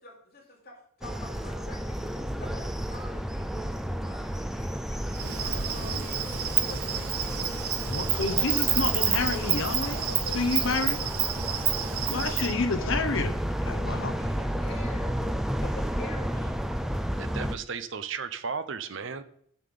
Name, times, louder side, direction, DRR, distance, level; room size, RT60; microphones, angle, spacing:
voice 1, 0.0-7.6 7.8-8.9 9.8-12.0 12.3-13.2 14.2-15.2 15.6-16.7, left 2 dB, 45° left, 2.8 m, -46 dB
sound 1, 1.0-17.5, equal, ahead, 0.3 m, -32 dB
Insect, 5.1-12.5, right 10 dB, 85° right, 0.9 m, -29 dB
voice 2, 7.9-10.0 10.3-11.0 12.1-13.3 13.6-14.2, left 3 dB, 60° left, 0.9 m, -29 dB
voice 3, 17.2-19.2, right 5 dB, 60° right, 0.7 m, -35 dB
7.4 x 5.6 x 6.9 m
head